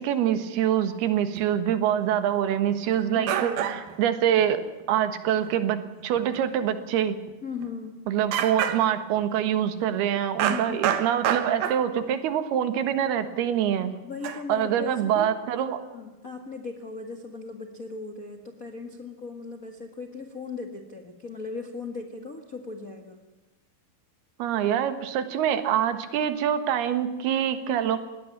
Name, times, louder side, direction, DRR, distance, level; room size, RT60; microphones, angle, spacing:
voice 1, 0.0-4.6 4.9-7.2 8.1-13.9 14.5-15.8 24.4-28.0, right 10 dB, 90° right, 10 dB, 3.5 m, -25 dB
sound 1, 1.4-1.5 2.7-2.8 3.3-4.0 4.4-4.5 4.8-4.9 5.3-5.5 6.2-6.4 6.7-6.8 7.3-7.4 7.6-7.7 8.3-9.2 10.4-12.0 12.9-13.0 14.2-14.4, right 9 dB, 75° right, 3.0 m, -28 dB
voice 2, 2.9-3.9 7.4-8.0 10.4-11.0 14.0-15.3 15.7-23.2, left 4 dB, 40° left, 5 dB, 1.2 m, -38 dB
20.5 x 17.5 x 7.4 m, 1.1 s
omnidirectional pair, 4.4 m